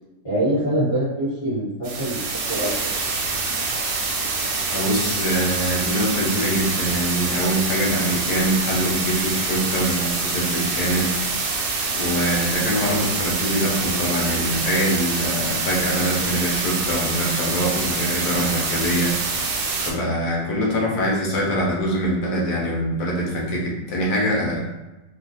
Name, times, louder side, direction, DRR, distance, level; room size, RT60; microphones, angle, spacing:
voice 1, 0.2-2.9, right 1 dB, 30° left, -12 dB, 1.3 m, -24 dB
sound 1, 1.8-19.9, right 3 dB, 75° right, 1.2 m, -25 dB
voice 2, 4.7-11.2 12.0-19.4 19.9-24.7, equal, 65° left, -3 dB, 1.2 m, -24 dB
3.2 x 2.4 x 2.6 m, 1.1 s
omnidirectional pair, 2.2 m